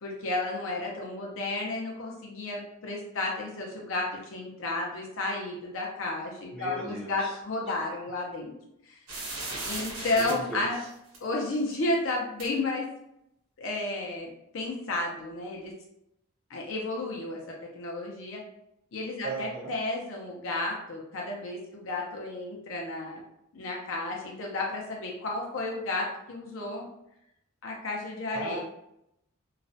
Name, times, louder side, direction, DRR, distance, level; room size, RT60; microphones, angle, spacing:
voice 1, 0.0-8.5 8.9-9.0 9.6-10.8 11.2-12.9 13.6-14.3 14.5-15.7 16.5-17.4 17.7-18.4 18.9-23.2 23.5-26.8 27.6-28.6, left 2 dB, 70° left, -2 dB, 0.5 m, -32 dB
voice 2, 6.5-7.4 7.7-7.8 9.1-9.7 10.0-10.9 19.2-19.7 28.3-28.6, right 2 dB, 5° left, -8 dB, 0.6 m, -38 dB
sound 1, 9.1-10.3 11.1-11.2 12.4-12.5, right 2 dB, 80° right, 0.9 m, -36 dB
2.3 x 2.0 x 2.6 m, 0.81 s
head